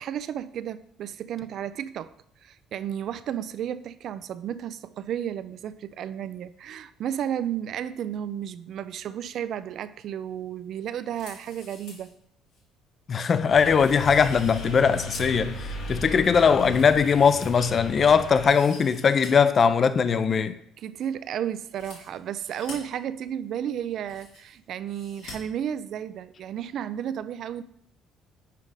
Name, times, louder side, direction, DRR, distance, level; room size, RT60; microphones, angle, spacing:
voice 1, 0.0-2.1 2.4-12.1 20.8-27.6, right 9 dB, 55° right, 0.4 m, -33 dB
sound 1, 11.0-12.1 12.5-12.6 13.1-13.3 13.7-15.4 15.8-17.9 18.3-19.3 19.6-19.7 21.6-22.7 23.6-23.7 23.8-24.6 24.9-25.3 25.6-25.7, left 4 dB, 90° left, 2.8 m, -47 dB
voice 2, 13.1-20.6, left 6 dB, 35° left, 0.5 m, -20 dB
sound 2, 13.5-18.5, left 1 dB, 65° left, 2.6 m, -36 dB
5.8 x 5.1 x 4.8 m
cardioid pair, 120°, 0 cm